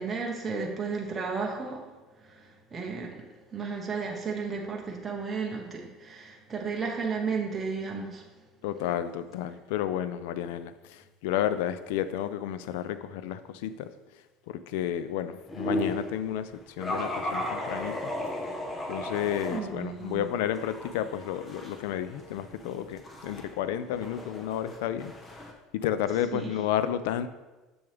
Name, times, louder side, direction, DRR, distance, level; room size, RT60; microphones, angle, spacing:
voice 1, 0.0-1.9 2.2-3.2 3.5-8.2 19.5-20.3 26.3-26.5, right 5 dB, 20° right, -1 dB, 0.9 m, -33 dB
voice 2, 8.6-13.9 14.5-18.0 18.9-25.1 25.7-27.3, left 10 dB, 90° left, 13 dB, 0.4 m, -31 dB
sound 1, 15.5-16.1 16.8-19.6 20.0-25.5, left 1 dB, 20° left, 0.9 m, -35 dB
6.9 x 6.9 x 3.4 m, 1.2 s
cardioid pair, 135°, 0 cm